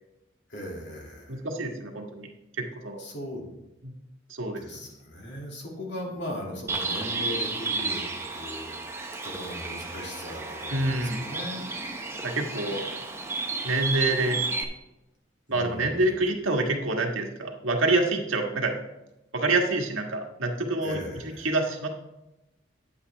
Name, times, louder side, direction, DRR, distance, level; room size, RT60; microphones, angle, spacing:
voice 1, 0.5-1.4 3.0-3.5 4.6-8.0 8.3-11.7 15.5-16.2 20.8-21.5, left 1 dB, 60° left, -2 dB, 2.5 m, -38 dB
voice 2, 1.3-2.3 2.6-3.0 3.8-3.9 4.3-4.6 10.7-11.2 12.2-12.8 13.6-14.4 15.5-18.7 19.3-21.0 21.2-21.9, right 2 dB, 90° right, 2 dB, 1.6 m, -27 dB
Bird, 6.7-14.6, right 3 dB, 15° right, 0.9 m, -32 dB
9.5 x 8.3 x 3.4 m, 0.93 s
head